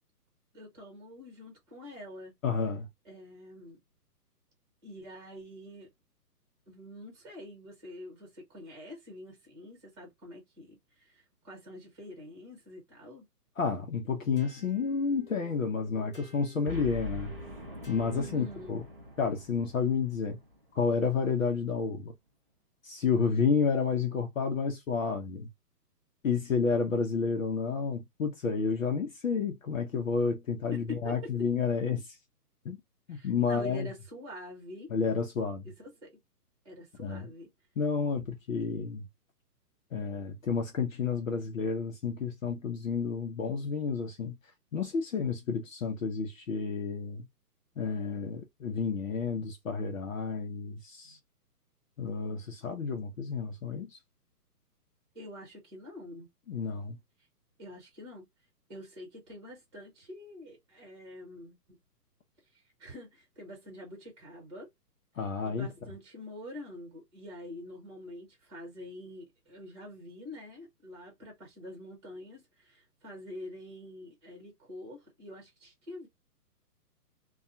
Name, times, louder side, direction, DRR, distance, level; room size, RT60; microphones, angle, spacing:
voice 1, 0.5-2.3 3.0-3.8 4.8-5.9 6.7-13.3 18.1-18.7 30.7-31.3 33.1-34.9 35.6-36.2 36.6-37.5 51.0-51.2 55.1-56.3 57.6-58.3 58.7-61.6 62.5-64.7 65.4-76.1, left 1 dB, 15° right, 1.2 m, -46 dB
voice 2, 2.4-2.9 13.6-17.3 17.9-18.9 19.2-20.4 20.8-22.1 22.8-25.5 26.2-32.2 32.6-32.8 33.1-33.9 34.9-35.7 37.0-37.3 37.8-39.0 39.9-44.4 44.7-47.3 47.8-51.2 52.0-54.0 56.5-57.0 65.2-66.0, left 5 dB, 55° left, 0.7 m, -30 dB
sound 1, 14.4-19.1, left 4 dB, 20° left, 0.7 m, -54 dB
Boom, 16.7-21.1, equal, 40° right, 0.4 m, -43 dB
2.4 x 2.3 x 2.5 m
hypercardioid pair, 170°, 48 cm